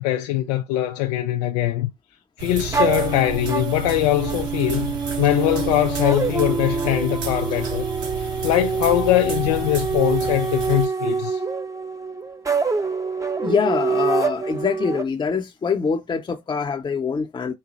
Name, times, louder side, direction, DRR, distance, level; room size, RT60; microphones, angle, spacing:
voice 1, 0.0-1.9 2.4-7.9 8.2-11.4, left 14 dB, 75° left, 0.5 m, -22 dB
sound 1, 2.4-10.8, right 8 dB, 65° right, 1.5 m, -32 dB
sound 2, 2.7-15.0, right 4 dB, 15° right, 0.8 m, -26 dB
voice 2, 13.4-17.5, left 6 dB, 25° left, 0.7 m, -24 dB
4.2 x 2.2 x 3.9 m
hypercardioid pair, 60°, 20 cm